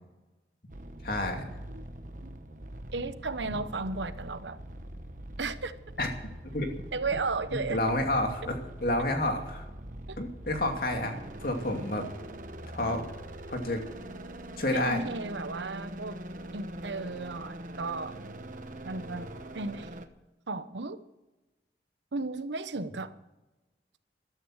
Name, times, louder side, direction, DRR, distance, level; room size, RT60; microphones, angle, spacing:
sound 1, 0.7-20.1, right 1 dB, 45° right, 1.1 m, -43 dB
voice 1, 1.0-1.4 3.5-3.6 6.0-6.1 6.5-6.8 7.7-9.6 10.2-12.0 12.7-13.0 13.5-13.8 14.6-15.0, left 1 dB, 55° left, 2.6 m, -29 dB
voice 2, 2.9-4.6 5.4-5.7 6.9-7.8 10.1-10.2 14.7-16.2 16.5-18.1 18.8-19.3 19.5-19.9 20.5-21.0 22.1-23.1, right 3 dB, 90° right, 1.0 m, -34 dB
13.5 x 13.0 x 6.5 m
head